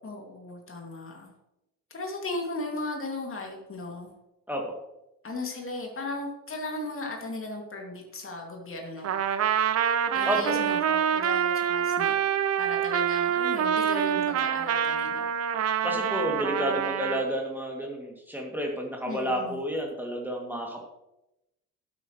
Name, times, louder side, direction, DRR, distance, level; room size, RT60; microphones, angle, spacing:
voice 1, 0.0-1.3 1.9-4.1 5.2-9.1 10.1-12.1 12.6-15.3 19.1-19.6, left 2 dB, 30° left, 1 dB, 2.5 m, -36 dB
Trumpet, 9.0-17.2, right 9 dB, 35° right, 0.7 m, -26 dB
voice 2, 10.2-10.6 15.8-20.8, equal, 5° right, -1 dB, 2.6 m, -30 dB
12.5 x 9.6 x 3.2 m, 0.89 s
figure-of-eight pair, 45°, 42 cm